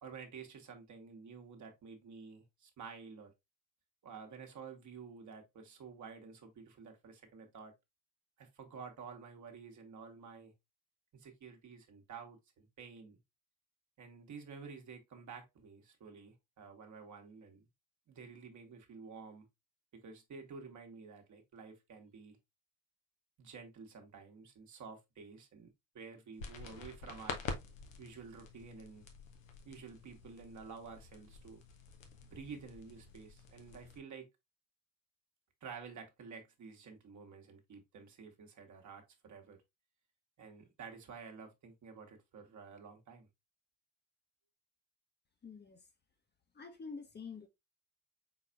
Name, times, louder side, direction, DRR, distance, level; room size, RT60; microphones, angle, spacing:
voice 1, 0.0-3.3 4.0-7.7 8.4-10.5 11.1-13.2 14.0-17.7 18.1-19.5 19.9-22.4 23.4-27.5 28.0-29.1 29.6-31.6 32.2-34.3 35.6-39.6 40.4-43.3, right 5 dB, 50° right, 1.2 m, -51 dB
sound 1, 26.4-34.0, left 4 dB, 85° left, 0.6 m, -48 dB
voice 2, 45.4-45.8 46.6-47.5, left 5 dB, 25° left, 0.8 m, -47 dB
4.1 x 4.0 x 2.4 m
hypercardioid pair, 45°, 38 cm